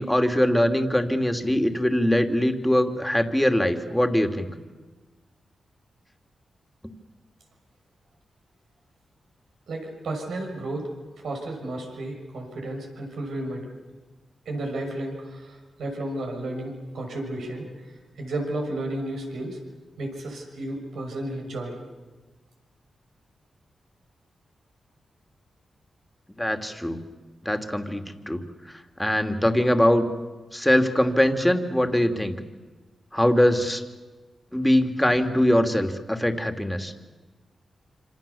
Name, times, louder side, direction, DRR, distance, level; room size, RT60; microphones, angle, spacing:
voice 1, 0.0-4.5 26.4-27.0 27.4-28.4 28.7-30.0 30.5-32.3 33.1-33.8 34.5-36.9, left 1 dB, 10° left, 6 dB, 2.8 m, -22 dB
voice 2, 9.7-10.9 11.2-13.7 14.4-17.7 18.2-19.6 20.0-21.8, right 1 dB, 80° right, 1 dB, 6.5 m, -32 dB
26.5 x 26.5 x 7.2 m, 1.3 s
cardioid pair, 60°, 0 cm